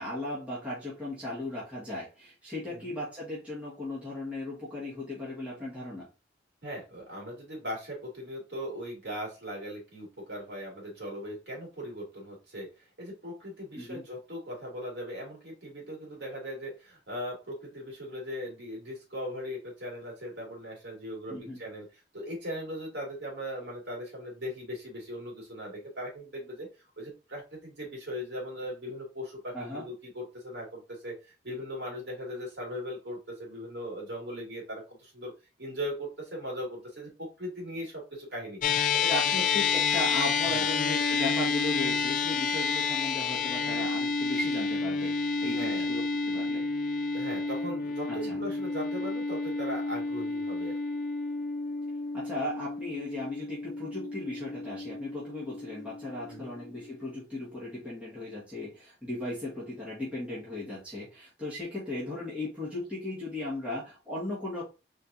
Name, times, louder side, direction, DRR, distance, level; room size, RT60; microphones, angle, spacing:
voice 1, 0.0-6.1 13.8-14.0 21.3-21.6 29.5-29.8 39.1-46.6 48.1-48.4 52.1-64.6, left 2 dB, 10° right, -9 dB, 2.0 m, -37 dB
voice 2, 6.6-12.7 13.0-26.7 27.0-35.3 35.6-38.6 38.9-39.4 40.4-40.7 45.4-45.9 47.1-50.8 56.3-56.5, equal, 75° right, -2 dB, 2.8 m, -39 dB
sound 1, 38.6-57.2, left 4 dB, 45° left, 0.4 m, -30 dB
4.5 x 3.7 x 2.7 m, 0.29 s
head